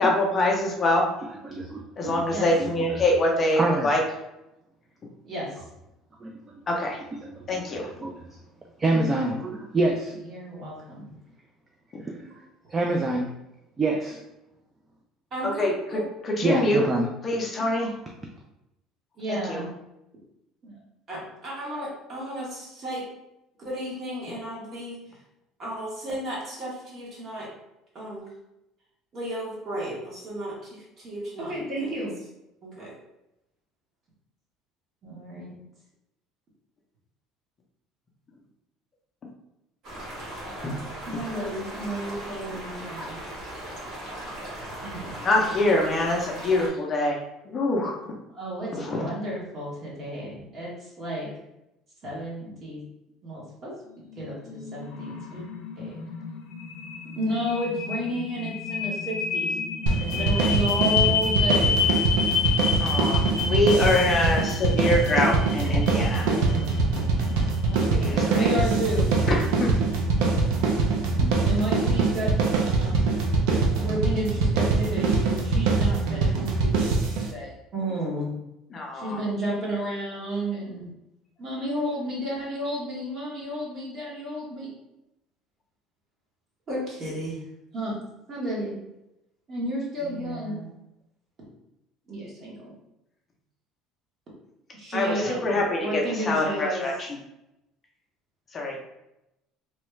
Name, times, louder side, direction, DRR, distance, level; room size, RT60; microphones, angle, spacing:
voice 1, 0.0-1.1 2.0-4.0 6.7-7.0 7.5-7.9 15.6-16.8 17.2-17.9 19.3-19.6 40.6-40.7 45.2-47.2 47.5-47.9 48.7-49.1 62.8-66.3 67.9-68.5 69.3-69.7 70.2-70.3 71.2-71.3 78.7-79.2 94.9-96.9 98.5-98.8, left 2 dB, 30° left, 0 dB, 0.5 m, -25 dB
voice 2, 1.2-2.3 2.6-3.0 3.6-3.9 6.2-6.4 6.7-6.9 7.2-8.4 8.8-10.1 12.0-13.3 13.8-14.2 16.4-17.1 17.6-18.1, right 2 dB, 20° right, 1 dB, 0.3 m, -28 dB
voice 3, 5.2-5.6 10.3-11.1 15.3-16.1 19.2-19.7 20.6-20.7 21.1-23.1 23.6-25.0 25.6-27.5 27.9-28.3 29.1-32.3 32.6-32.9 35.0-35.5 41.1-43.2 44.8-45.1 48.4-51.3 52.0-52.8 53.2-53.7 54.2-55.4 55.8-56.0 57.2-61.9 62.8-65.0 65.3-65.9 67.6-69.2 71.4-72.3 72.6-73.2 73.8-78.3 78.9-80.9 81.4-84.7 86.7-87.4 87.7-88.0 88.3-88.7 89.5-90.7 92.1-92.7 94.7-96.9, right 1 dB, 35° right, -5 dB, 1.2 m, -32 dB
sound 1, 39.8-46.7, right 1 dB, 55° right, 1.3 m, -38 dB
sound 2, 54.1-72.2, left 6 dB, 80° left, 0.5 m, -31 dB
sound 3, 59.9-77.3, right 3 dB, 80° right, 0.6 m, -23 dB
3.0 x 2.3 x 3.1 m, 0.89 s
cardioid pair, 140°, 0 cm